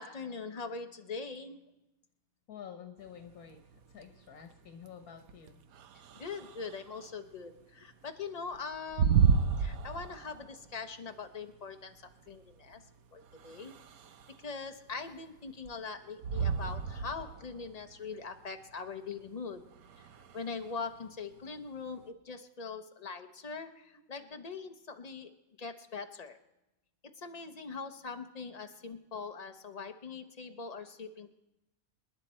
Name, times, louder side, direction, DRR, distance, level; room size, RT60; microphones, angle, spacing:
voice 1, 0.0-1.6 6.1-12.8 13.1-13.7 14.4-19.6 20.3-25.3 25.6-26.4 27.2-31.3, left 5 dB, 35° left, 6 dB, 0.8 m, -42 dB
voice 2, 2.5-3.6 3.9-5.6, left 8 dB, 85° left, 4 dB, 1.5 m, -49 dB
sound 1, 3.0-22.1, right 6 dB, 80° right, 1.2 m, -34 dB
27.0 x 10.5 x 4.3 m, 0.95 s
omnidirectional pair, 1.5 m